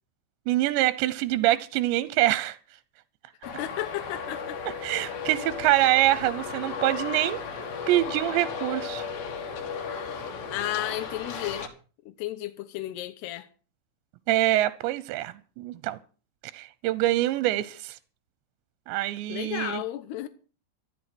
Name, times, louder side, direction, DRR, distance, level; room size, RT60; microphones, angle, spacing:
voice 1, 0.5-2.6 4.8-7.4 7.9-9.1 14.3-16.0 16.5-18.0 18.9-19.8, right 15 dB, 80° right, 2.9 m, -25 dB
voice 2, 3.4-4.6 10.5-11.7 12.1-13.5 19.3-20.3, left 14 dB, 75° left, 2.7 m, -33 dB
Traffic noise roadway noise, 3.4-11.7, left 5 dB, 50° left, 3.1 m, -35 dB
14.0 x 13.5 x 6.1 m
omnidirectional pair, 5.4 m